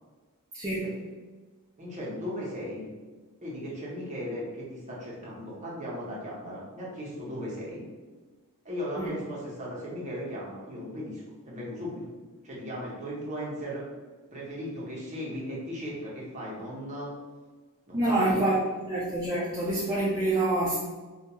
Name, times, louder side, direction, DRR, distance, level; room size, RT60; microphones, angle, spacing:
voice 1, 0.5-0.9 9.0-9.1 17.9-18.6 18.9-20.8, right 2 dB, 15° right, -8 dB, 0.3 m, -26 dB
voice 2, 1.8-2.9 3.4-7.8 8.6-12.1 12.4-13.8 14.3-17.1 17.9-18.4, equal, 30° right, -6 dB, 0.7 m, -37 dB
2.3 x 2.2 x 2.9 m, 1.3 s
head